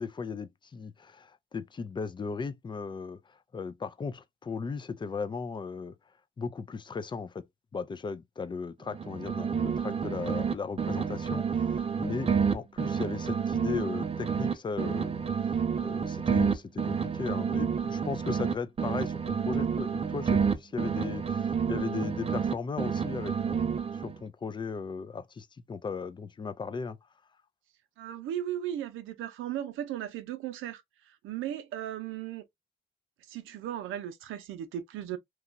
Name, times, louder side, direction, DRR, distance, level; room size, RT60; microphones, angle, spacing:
voice 1, 0.0-6.0 6.4-7.5 7.7-23.7 24.0-27.0, left 5 dB, 25° left, 0.4 m, -37 dB
sound 1, 8.9-10.5 10.8-14.5 14.8-18.5 18.8-22.5 22.8-24.2, right 6 dB, 30° right, 0.5 m, -29 dB
voice 2, 28.0-32.4 33.3-35.2, right 11 dB, 80° right, 0.6 m, -36 dB
2.9 x 2.3 x 2.6 m
cardioid pair, 90°, 20 cm